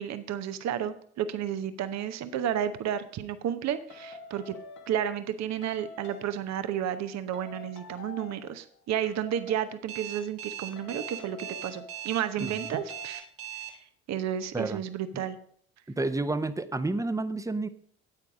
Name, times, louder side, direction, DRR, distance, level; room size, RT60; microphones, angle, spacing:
voice 1, 0.0-4.6 4.9-13.3 13.7-13.8 14.1-15.4, right 9 dB, 55° right, 11 dB, 0.9 m, -32 dB
sound 1, 3.9-5.3 5.6-6.5 7.3-8.6 9.0-9.8 10.8-12.2 12.5-13.2, left 3 dB, 65° left, 1.7 m, -47 dB
Alarm, 9.9-13.7, right 12 dB, 75° right, 1.7 m, -39 dB
voice 2, 15.9-17.7, right 2 dB, 10° right, 12 dB, 0.8 m, -30 dB
9.0 x 8.4 x 5.0 m, 0.62 s
hypercardioid pair, 55°, 32 cm